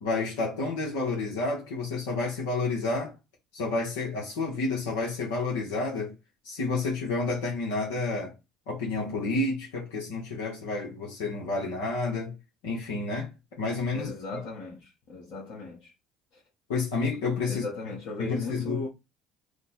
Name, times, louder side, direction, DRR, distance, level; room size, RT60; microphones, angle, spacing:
voice 1, 0.0-3.1 3.5-6.1 6.4-8.3 8.7-12.3 12.6-14.1 16.7-17.6 18.2-18.8, left 3 dB, 85° left, 1.0 m, -30 dB
voice 2, 13.9-15.9 17.5-18.9, left 3 dB, 65° left, 1.3 m, -37 dB
3.3 x 2.1 x 4.2 m
supercardioid pair, 75°, 0 cm